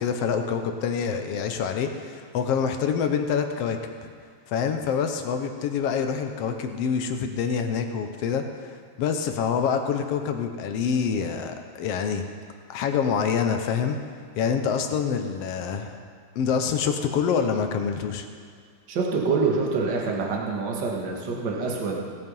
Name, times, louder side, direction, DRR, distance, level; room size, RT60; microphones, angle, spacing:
voice 1, 0.0-4.1 4.5-12.2 12.7-14.0 14.4-15.9 16.3-18.3, left 6 dB, 65° left, 6 dB, 1.7 m, -26 dB
voice 2, 18.9-22.0, right 4 dB, 45° right, -1 dB, 2.0 m, -26 dB
17.5 x 8.3 x 5.4 m, 2.1 s
omnidirectional pair, 3.3 m